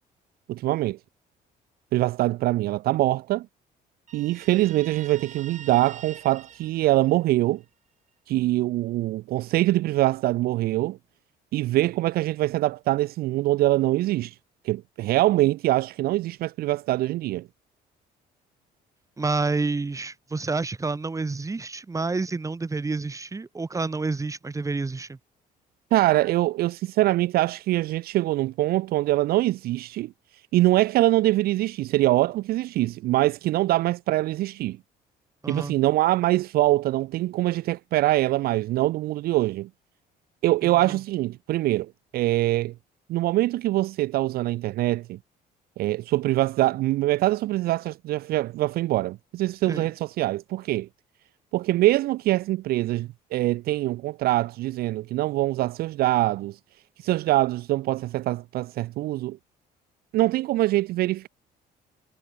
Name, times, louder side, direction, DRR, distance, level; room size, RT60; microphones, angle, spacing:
voice 1, 0.5-1.0 1.9-3.5 4.1-7.6 8.3-11.0 11.5-14.3 14.6-17.5 25.9-30.1 30.5-34.8 35.5-39.7 40.4-42.7 43.1-45.2 45.8-50.9 51.5-56.6 57.0-59.4 60.1-61.3, right 16 dB, 65° right, 0.4 m, -24 dB
Guitar, 4.1-7.6, right 8 dB, 45° right, 4.7 m, -45 dB
voice 2, 19.2-25.2 35.4-35.7 40.6-41.0 49.7-49.9, right 3 dB, 20° right, 2.7 m, -29 dB
cardioid pair, 110°, 17 cm